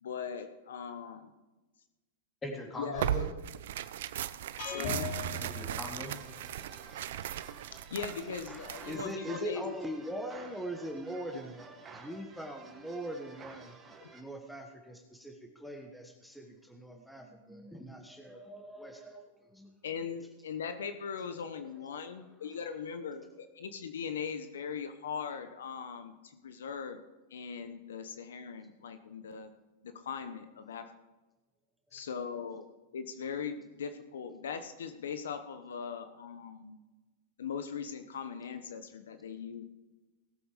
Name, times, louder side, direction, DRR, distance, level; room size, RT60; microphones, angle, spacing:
voice 1, 0.0-1.3 2.8-3.3 4.6-5.1 7.9-9.7 14.0-14.1 19.8-27.0 27.3-29.5 29.8-30.9 31.9-32.7 32.9-36.8 37.4-39.6, left 6 dB, 85° left, 9 dB, 1.1 m, -40 dB
voice 2, 2.4-3.3 5.4-6.2, left 1 dB, 15° left, 0 dB, 3.4 m, -40 dB
Tearing, 2.9-9.1, right 11 dB, 70° right, 0.6 m, -37 dB
sound 1, 4.6-6.6, left 2 dB, 60° left, 3.5 m, -38 dB
sound 2, 6.0-14.2, right 4 dB, 20° right, 2.0 m, -52 dB
voice 3, 8.8-13.8 14.1-19.7 21.3-21.4 21.8-22.6 31.9-32.1, right 1 dB, ahead, 2 dB, 1.4 m, -42 dB
18.0 x 8.1 x 5.0 m, 1.2 s
hypercardioid pair, 120°, 0 cm